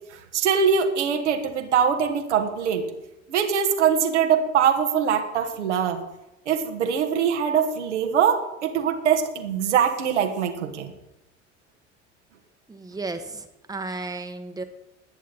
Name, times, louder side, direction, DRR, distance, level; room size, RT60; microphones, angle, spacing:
voice 1, 0.3-2.9 3.3-6.0 6.5-10.9, right 7 dB, 70° right, 5 dB, 1.7 m, -22 dB
voice 2, 12.7-14.6, right 3 dB, 10° right, 6 dB, 1.4 m, -34 dB
20.5 x 9.2 x 4.1 m, 0.94 s
figure-of-eight pair, 65°, 36 cm